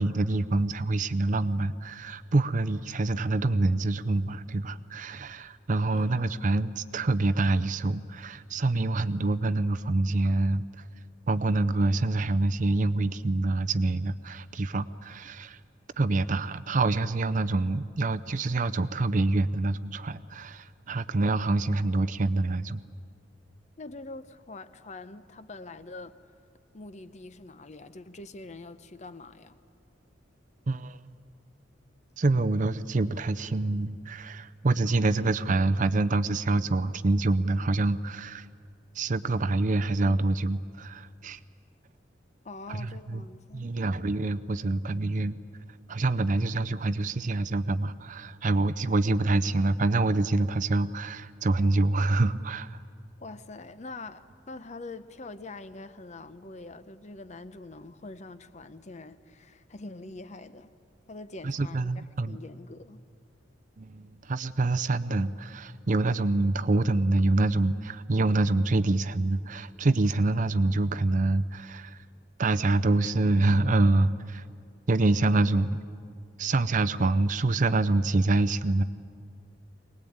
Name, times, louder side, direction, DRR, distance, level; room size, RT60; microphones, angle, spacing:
voice 1, 0.0-10.7 11.3-15.6 16.0-22.8 30.7-31.0 32.2-38.5 39.0-41.4 42.7-43.2 43.5-45.4 45.9-52.8 61.4-62.4 63.8-72.0 72.4-74.4 74.9-75.8 76.4-78.8, right 2 dB, 40° right, 0.5 m, -26 dB
voice 2, 5.9-6.3 23.8-26.1 26.7-29.6 42.4-43.7 53.2-60.7 61.1-63.0, left 2 dB, 40° left, 0.7 m, -44 dB
23.5 x 19.5 x 8.7 m
head